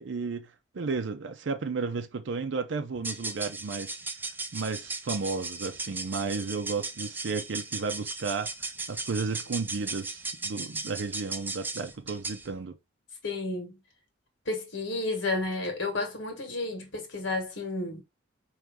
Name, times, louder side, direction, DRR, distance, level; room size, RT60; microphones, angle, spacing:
voice 1, 0.0-4.0 4.5-12.8, right 4 dB, 75° right, 0.5 m, -33 dB
sound 1, 3.0-12.5, right 3 dB, 10° right, 0.4 m, -37 dB
voice 2, 13.2-13.8 14.5-18.0, left 2 dB, 80° left, 1.8 m, -31 dB
4.6 x 3.1 x 3.6 m
head